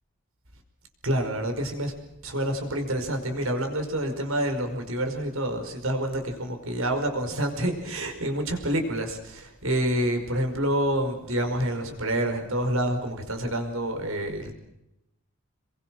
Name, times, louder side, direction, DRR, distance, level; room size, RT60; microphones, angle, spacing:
voice 1, 1.0-1.9 2.2-14.5, right 1 dB, 75° right, 5 dB, 5.3 m, -28 dB
28.0 x 22.5 x 6.3 m, 0.88 s
head